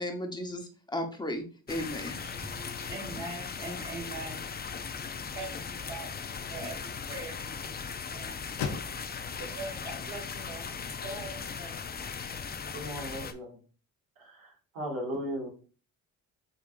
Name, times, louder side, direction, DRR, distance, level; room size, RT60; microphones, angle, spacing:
voice 1, 0.0-2.2, left 1 dB, 10° left, 3 dB, 1.0 m, -35 dB
sound 1, 1.7-13.3, left 6 dB, 30° left, 0.5 m, -38 dB
voice 2, 2.2-12.8, right 2 dB, 35° right, -6 dB, 1.9 m, -44 dB
sound 2, 5.0-11.2, left 6 dB, 90° left, 0.8 m, -44 dB
voice 3, 12.7-13.6 14.2-15.5, equal, 80° right, -2 dB, 2.0 m, -37 dB
5.1 x 3.5 x 2.5 m, 0.39 s
supercardioid pair, 65°, 35 cm